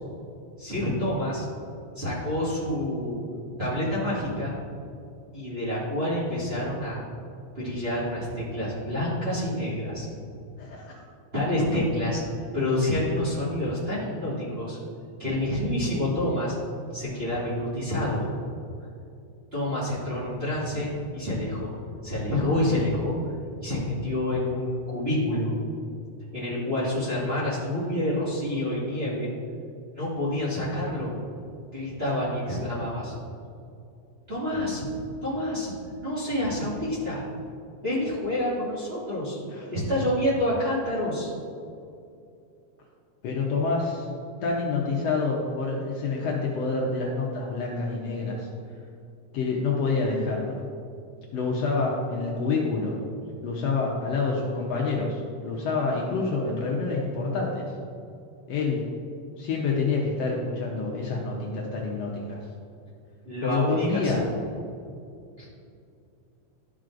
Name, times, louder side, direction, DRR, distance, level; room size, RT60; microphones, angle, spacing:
voice 1, 0.6-1.4 2.0-3.2 3.6-4.5 5.3-7.0 7.5-10.1 11.3-12.2 12.5-14.8 15.2-16.5 16.9-18.3 19.5-21.8 22.0-23.2 23.6-25.5 26.3-29.3 29.9-31.1 31.7-33.1 34.3-34.8 35.2-35.7 36.0-37.2 37.8-39.4 39.7-41.3 63.2-64.2 65.4-65.5, left 1 dB, 25° right, -10 dB, 1.9 m, -28 dB
voice 2, 10.6-11.0 39.5-39.7 43.2-44.1 44.4-48.5 49.3-50.6 51.3-52.9 53.4-57.6 58.5-58.8 59.4-62.4 63.4-64.2, left 4 dB, 70° left, -2 dB, 1.8 m, -27 dB
12.0 x 6.1 x 2.5 m, 2.5 s
omnidirectional pair, 3.4 m